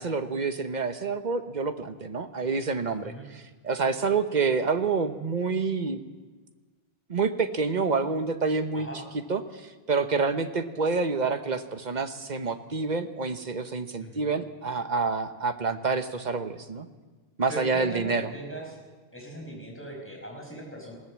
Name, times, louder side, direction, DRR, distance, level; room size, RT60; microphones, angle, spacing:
voice 1, 0.0-6.0 7.1-8.9 9.3-16.9 17.4-18.3, right 4 dB, 45° right, 8 dB, 1.2 m, -28 dB
voice 2, 17.5-18.8 19.1-21.0, equal, 10° left, -1 dB, 5.4 m, -39 dB
20.5 x 17.0 x 7.4 m, 1.4 s
omnidirectional pair, 1.1 m